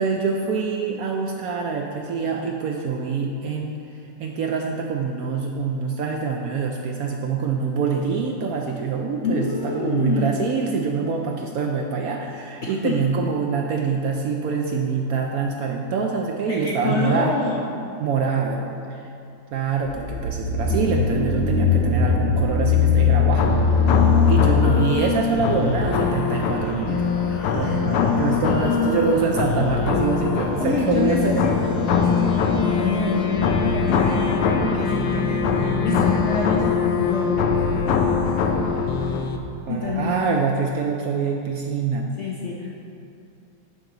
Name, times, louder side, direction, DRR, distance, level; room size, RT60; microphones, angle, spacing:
voice 1, 0.0-3.8 4.2-17.3 18.0-19.0 19.5-23.4 23.8-31.5 39.7-42.1, right 5 dB, 70° right, 1 dB, 0.8 m, -25 dB
voice 2, 9.2-10.3 12.6-13.0 16.5-17.6 27.3-29.2 30.6-37.6 39.7-40.2 42.2-42.8, left 3 dB, 65° left, -3 dB, 0.7 m, -27 dB
sound 1, 19.9-24.9, left 5 dB, 55° right, 1.3 m, -20 dB
sound 2, 23.4-39.4, left 5 dB, 85° left, 1.3 m, -22 dB
10.5 x 3.9 x 4.6 m, 2.6 s
omnidirectional pair, 1.9 m